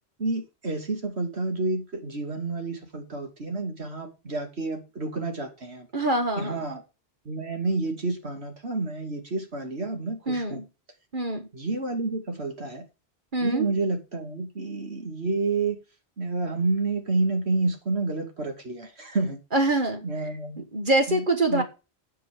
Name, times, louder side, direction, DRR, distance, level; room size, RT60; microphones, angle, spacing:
voice 1, 0.2-5.9 6.4-6.8 7.2-10.6 11.5-12.8 13.4-15.8 16.2-19.4 20.0-20.6 21.1-21.2 21.5-21.6, right 3 dB, 70° right, 2.8 m, -29 dB
voice 2, 5.9-6.6 10.3-10.6 11.1-11.5 13.3-13.7 19.5-20.0 20.6-21.6, right 2 dB, 50° right, 1.5 m, -24 dB
9.4 x 6.0 x 7.5 m
omnidirectional pair, 1.1 m